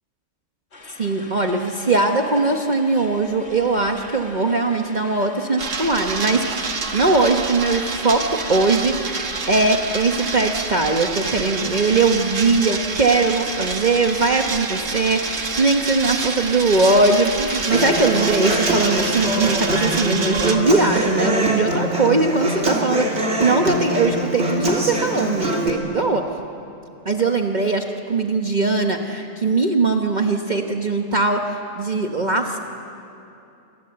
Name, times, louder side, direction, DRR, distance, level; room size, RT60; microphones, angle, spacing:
sound 1, 0.7-19.7, left 2 dB, 60° left, 2.4 m, -41 dB
voice 1, 1.0-8.2 8.5-9.1 9.5-26.2 27.0-31.4 31.7-32.6, right 3 dB, 40° right, 3 dB, 1.3 m, -20 dB
sound 2, 5.6-20.6, right 4 dB, 80° right, 1.9 m, -28 dB
Human voice / Acoustic guitar, 17.7-25.7, right 1 dB, 60° right, 3.4 m, -23 dB
28.5 x 24.5 x 7.9 m, 2.7 s
omnidirectional pair, 1.3 m